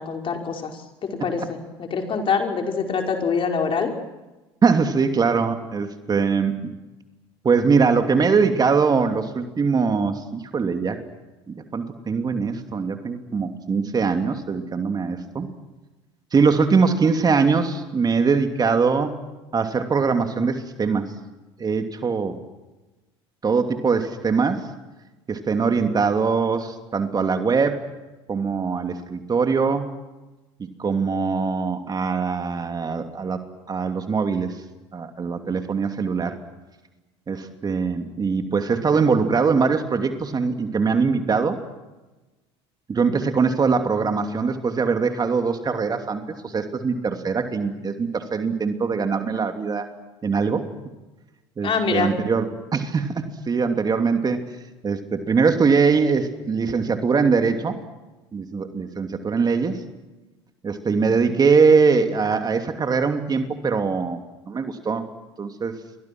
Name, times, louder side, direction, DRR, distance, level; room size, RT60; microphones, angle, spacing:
voice 1, 0.0-3.9 51.6-52.1, left 5 dB, 40° left, 3 dB, 5.4 m, -25 dB
voice 2, 4.6-6.7 7.4-11.0 11.5-15.5 16.3-19.2 19.5-21.1 21.6-22.4 23.4-24.7 25.3-27.8 28.3-29.9 30.8-33.4 33.7-34.5 34.9-36.4 37.3-41.6 42.9-49.9 50.2-50.6 51.6-54.4 54.8-57.7 58.3-59.8 60.6-64.2 64.5-65.0 65.4-65.7, right 5 dB, 30° right, 6 dB, 2.8 m, -22 dB
29.5 x 24.5 x 6.2 m, 1.1 s
hypercardioid pair, 75°, 14 cm